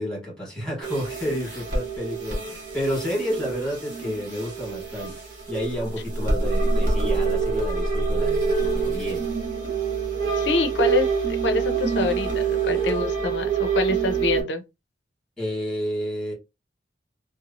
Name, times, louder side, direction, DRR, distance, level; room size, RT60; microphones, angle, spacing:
voice 1, 0.0-9.3 15.4-16.3, equal, 5° left, 1.4 m, -30 dB
sound 1, 0.8-14.4, right 4 dB, 45° right, 1.0 m, -26 dB
voice 2, 10.4-14.6, left 3 dB, 75° left, 0.6 m, -26 dB
2.9 x 2.1 x 2.6 m
head